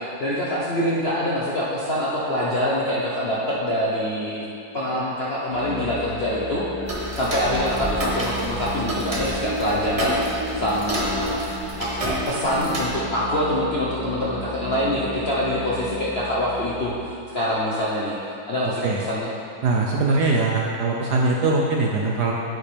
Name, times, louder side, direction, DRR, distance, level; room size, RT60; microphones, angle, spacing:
voice 1, 0.0-4.5 4.7-6.6 6.9-11.4 11.8-18.1 18.5-19.3, equal, 50° left, -7 dB, 0.7 m, -25 dB
Musical instrument, 5.5-17.1, equal, 70° left, 1.8 m, -33 dB
Tick-tock, 6.9-12.9, right 1 dB, 35° right, 0.5 m, -31 dB
voice 2, 19.6-22.3, right 3 dB, 65° right, -1 dB, 1.0 m, -21 dB
9.4 x 8.0 x 3.4 m, 2.6 s
omnidirectional pair, 2.3 m